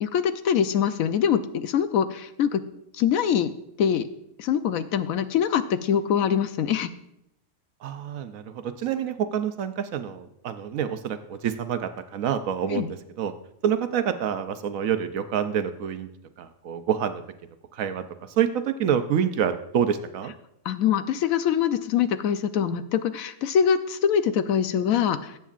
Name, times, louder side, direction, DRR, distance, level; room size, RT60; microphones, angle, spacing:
voice 1, 0.0-2.6 2.9-3.5 3.8-4.1 4.4-6.9 12.7-12.9 20.6-25.3, left 8 dB, 80° left, 11 dB, 1.1 m, -24 dB
voice 2, 7.8-13.3 13.6-16.1 16.4-17.2 17.7-20.3, right 8 dB, 80° right, 9 dB, 1.1 m, -27 dB
20.5 x 8.2 x 2.5 m, 0.79 s
omnidirectional pair, 1.4 m